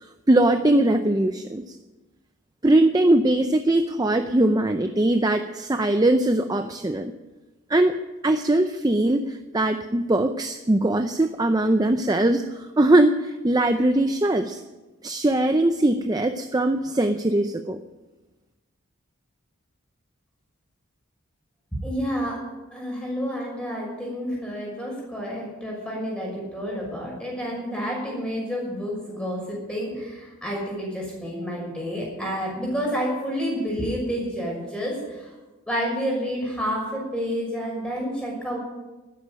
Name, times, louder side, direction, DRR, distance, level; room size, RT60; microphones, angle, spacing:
voice 1, 0.3-1.8 2.6-7.1 7.7-8.0 8.2-14.6 15.0-17.8, right 1 dB, 20° right, 7 dB, 0.5 m, -21 dB
voice 2, 21.8-22.4 22.7-35.3 35.7-38.6, equal, 5° left, -3 dB, 6.0 m, -29 dB
12.5 x 9.8 x 9.0 m, 1.1 s
head